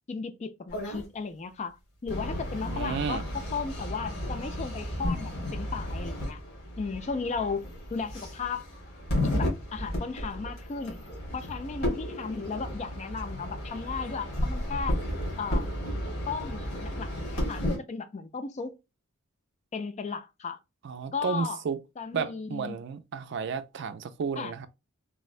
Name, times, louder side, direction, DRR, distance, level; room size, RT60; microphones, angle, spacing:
voice 1, 0.1-1.8 2.0-3.2 3.5-6.4 6.8-7.7 7.9-8.7 9.2-11.0 11.3-15.0 15.4-15.7 16.3-18.7 19.7-20.6 21.1-21.6 22.0-22.8 24.4-24.5, left 5 dB, 35° left, 0.4 m, -35 dB
sound 1, 0.7-1.1 2.1-17.8, left 1 dB, 55° left, 1.7 m, -33 dB
voice 2, 2.7-3.2 20.8-21.8 22.1-24.7, right 6 dB, 60° right, 0.4 m, -32 dB
3.5 x 2.1 x 2.4 m
head